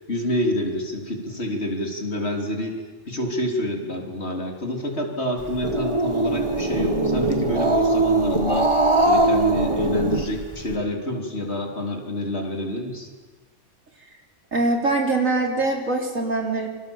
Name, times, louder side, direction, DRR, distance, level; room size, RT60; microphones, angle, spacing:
voice 1, 0.1-2.8 3.1-8.7 9.1-13.1, left 1 dB, 45° left, 2 dB, 3.8 m, -27 dB
Growling, 5.4-10.7, right 2 dB, 20° right, 1.8 m, -21 dB
voice 2, 14.5-16.7, right 2 dB, 65° right, 2 dB, 4.2 m, -23 dB
28.5 x 25.5 x 7.2 m, 1.4 s
omnidirectional pair, 1.5 m